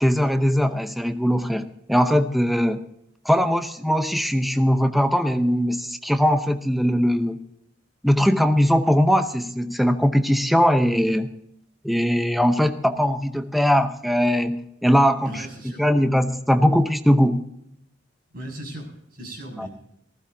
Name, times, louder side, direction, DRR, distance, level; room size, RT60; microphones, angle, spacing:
voice 1, 0.0-2.8 3.2-7.4 8.0-11.3 11.8-15.3 15.8-17.4 19.6-19.7, equal, ahead, 8 dB, 0.8 m, -20 dB
voice 2, 15.2-15.8 18.3-19.7, right 1 dB, 50° right, 2 dB, 6.5 m, -37 dB
19.0 x 15.5 x 2.7 m, 0.75 s
head